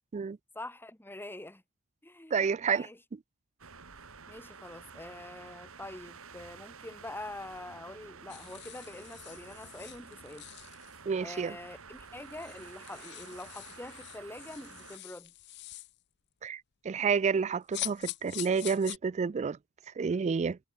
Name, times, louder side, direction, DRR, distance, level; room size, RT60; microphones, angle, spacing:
voice 1, 0.5-1.6 2.0-3.0 4.3-10.5 11.2-15.3, left 1 dB, 10° left, 1.2 m, -45 dB
voice 2, 2.3-2.9 11.1-11.6 16.4-19.6 20.0-20.6, right 5 dB, 30° right, 0.3 m, -29 dB
sound 1, 3.6-15.0, right 5 dB, 65° right, 3.4 m, -51 dB
sound 2, 8.3-11.0 11.7-11.8 12.0-16.0 17.7-19.0, left 17 dB, 50° left, 0.5 m, -44 dB
head